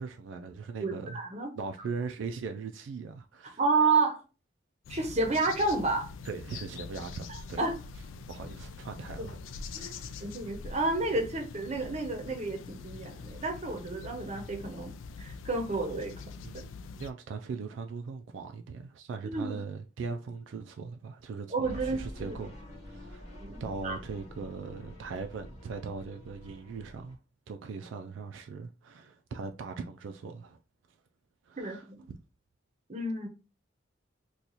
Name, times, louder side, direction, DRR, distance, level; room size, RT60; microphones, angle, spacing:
voice 1, 0.0-1.2 1.6-3.6 6.2-7.6 8.3-10.3 16.4-22.5 22.8-27.2 27.5-30.6 31.4-32.2, right 5 dB, 70° right, 0.3 m, -40 dB
voice 2, 0.8-1.5 3.6-4.2 4.9-6.1 7.3-7.8 9.7-9.9 10.2-16.1 16.5-16.6 19.2-19.5 21.5-22.4 23.4-24.0 31.6-32.1 32.9-33.3, right 3 dB, 35° right, 0.7 m, -30 dB
sound 1, 4.8-17.1, left 5 dB, 85° left, 0.4 m, -44 dB
sound 2, 21.6-27.1, left 1 dB, 35° left, 1.1 m, -46 dB
2.9 x 2.3 x 3.8 m
head